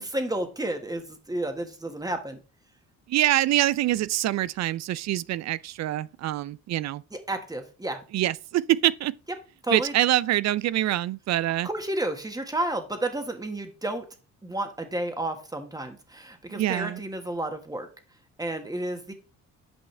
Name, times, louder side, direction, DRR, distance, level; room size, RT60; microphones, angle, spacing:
voice 1, 0.1-2.4 7.1-8.0 9.6-9.9 11.6-14.0 14.4-17.9 18.4-19.1, right 1 dB, 10° right, 1.4 m, -31 dB
voice 2, 3.1-7.0 8.1-9.1 9.7-11.7 16.5-17.0, right 14 dB, 60° right, 0.4 m, -25 dB
8.3 x 5.4 x 3.3 m
cardioid pair, 90°, 30 cm